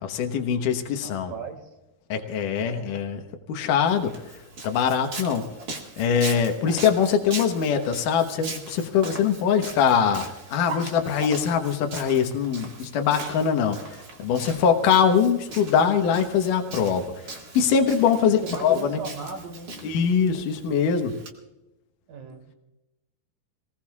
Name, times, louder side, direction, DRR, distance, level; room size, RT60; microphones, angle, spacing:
voice 1, 0.0-1.3 2.1-3.2 3.5-4.1 4.6-5.4 6.0-17.1 17.5-19.0 19.8-21.1, left 7 dB, 75° left, 5 dB, 2.7 m, -22 dB
voice 2, 1.0-1.6 2.7-2.9 18.2-19.8 22.1-22.6, right 5 dB, 80° right, 5 dB, 3.6 m, -37 dB
Walk footsteps, 3.9-21.3, right 3 dB, 35° right, 2.1 m, -40 dB
25.5 x 19.0 x 2.4 m, 0.96 s
omnidirectional pair, 3.8 m